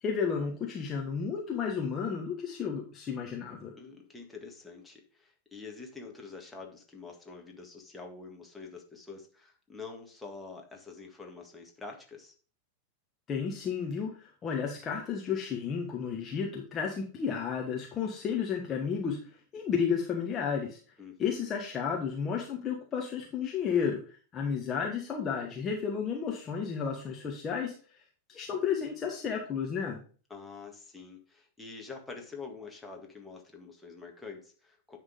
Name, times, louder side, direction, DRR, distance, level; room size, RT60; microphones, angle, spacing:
voice 1, 0.0-3.7 13.3-19.2 19.5-20.8 21.2-24.0 24.3-27.7 28.3-30.0, left 6 dB, 25° left, 0 dB, 1.2 m, -32 dB
voice 2, 3.7-12.3 21.0-21.5 30.3-35.0, left 4 dB, 5° left, 1 dB, 1.7 m, -46 dB
9.8 x 3.7 x 5.0 m, 0.40 s
figure-of-eight pair, 90°, 0 cm